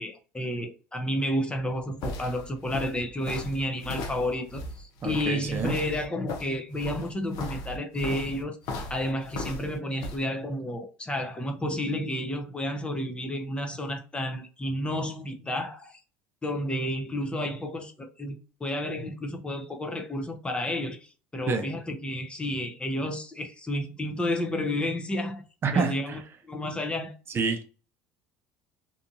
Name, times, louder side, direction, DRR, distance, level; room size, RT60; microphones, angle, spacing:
voice 1, 0.0-8.6 8.9-16.0 16.4-25.4 25.7-27.1, left 1 dB, 15° left, 0.7 m, -31 dB
sound 1, 1.6-10.2, left 2 dB, 65° left, 0.6 m, -38 dB
voice 2, 5.0-5.8 21.5-21.7 25.6-26.2 27.3-27.6, right 5 dB, 35° right, 0.6 m, -27 dB
2.8 x 2.5 x 2.4 m
supercardioid pair, 85°, 7 cm